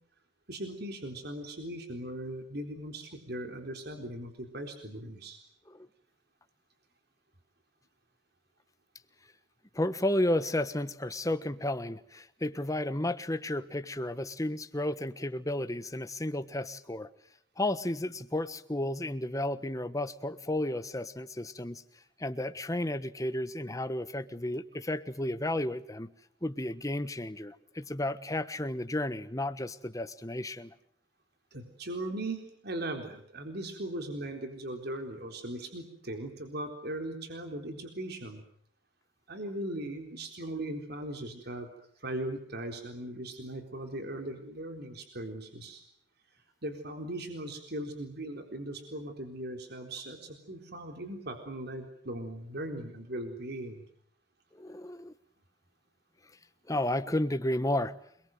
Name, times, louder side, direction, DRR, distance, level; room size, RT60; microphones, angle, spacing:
voice 1, 0.5-5.4 31.5-38.4 39.3-41.7 42.0-45.8 46.6-53.9, right 1 dB, 55° right, 5 dB, 4.0 m, -39 dB
voice 2, 9.7-17.1 17.6-21.8 22.2-26.1 26.4-30.7 54.5-55.1 56.7-57.9, left 1 dB, 15° left, 11 dB, 1.3 m, -32 dB
28.5 x 22.0 x 7.9 m, 0.67 s
head